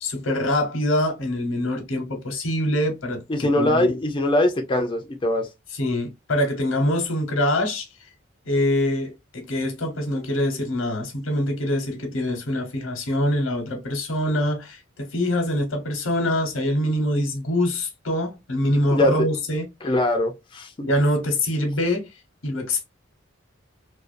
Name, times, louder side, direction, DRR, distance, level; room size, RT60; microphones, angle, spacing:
voice 1, 0.0-4.0 5.7-7.9 8.5-19.9 20.8-22.1 22.4-22.8, left 1 dB, 90° left, 0.9 m, -24 dB
voice 2, 3.3-5.5 18.9-19.1 19.8-20.7, left 1 dB, 25° left, 0.4 m, -22 dB
2.4 x 2.2 x 2.4 m
head